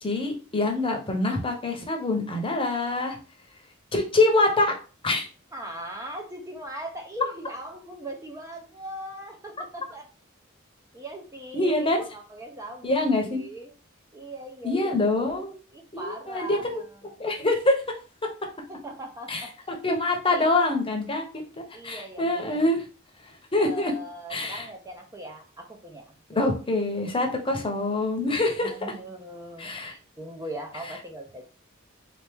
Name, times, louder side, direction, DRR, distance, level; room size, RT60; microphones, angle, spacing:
voice 1, 0.0-3.2 3.9-4.7 5.0-5.3 11.5-12.0 12.8-13.4 14.6-15.6 15.9-16.8 17.2-17.7 19.3-19.4 19.8-22.8 23.5-23.9 24.3-24.6 26.3-28.9 29.6-29.9, left 2 dB, 25° left, 2 dB, 0.9 m, -25 dB
voice 2, 5.5-10.1 10.9-13.7 14.1-15.4 15.7-17.1 18.7-19.5 20.3-20.5 21.7-22.6 23.6-26.0 26.3-26.5 28.6-31.4, right 1 dB, 15° right, 2 dB, 0.6 m, -40 dB
4.0 x 2.9 x 3.5 m, 0.35 s
head